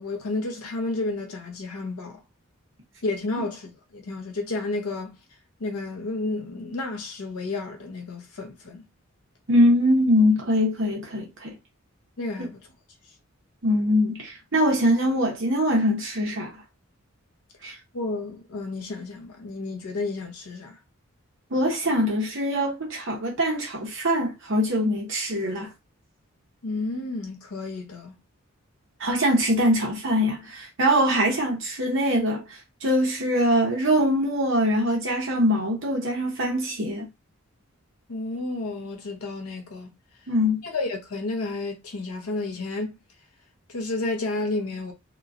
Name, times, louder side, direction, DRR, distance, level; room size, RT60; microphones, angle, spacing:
voice 1, 0.0-2.2 3.0-5.2 5.6-8.9 12.2-12.7 17.9-20.8 26.6-28.1 38.1-39.9 40.6-42.9 43.7-44.9, left 2 dB, 90° left, 0.7 m, -31 dB
voice 2, 9.5-11.6 12.4-12.5 13.6-16.6 17.6-17.8 21.5-25.7 29.0-37.1 40.3-40.6, equal, 60° right, 0.8 m, -23 dB
3.0 x 2.2 x 2.4 m
head